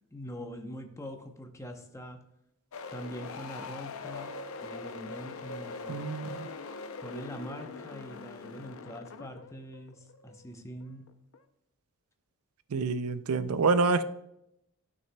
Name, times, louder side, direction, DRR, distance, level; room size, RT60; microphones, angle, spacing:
voice 1, 0.1-2.2 2.9-4.3 4.6-6.0 7.0-11.1, equal, 15° left, 4 dB, 0.7 m, -43 dB
sound 1, 2.7-11.4, left 4 dB, 65° left, 0.6 m, -42 dB
voice 2, 5.9-6.5 12.7-14.0, right 4 dB, 75° right, 13 dB, 0.4 m, -27 dB
12.5 x 6.1 x 2.2 m, 0.81 s
head